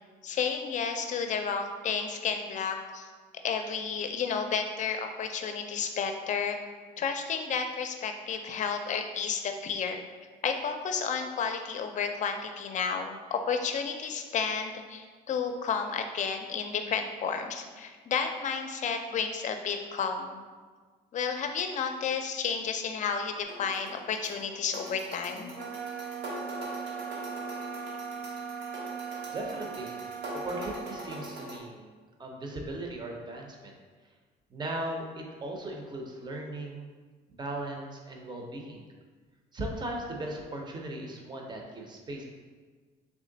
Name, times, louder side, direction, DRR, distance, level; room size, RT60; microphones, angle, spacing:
voice 1, 0.2-3.1 3.4-6.6 7.0-10.0 10.4-20.4 21.1-25.6, left 6 dB, 45° left, 6 dB, 0.5 m, -32 dB
sound 1, 23.4-31.6, right 1 dB, 75° right, 1.0 m, -42 dB
sound 2, 25.5-31.1, right 6 dB, 60° right, 0.5 m, -39 dB
voice 2, 29.3-30.0 30.3-31.9 32.2-33.7 34.5-36.9 37.3-38.9 39.5-42.2, right 1 dB, 25° right, 1 dB, 0.7 m, -38 dB
3.6 x 3.2 x 3.9 m, 1.5 s
cardioid pair, 110°, 17 cm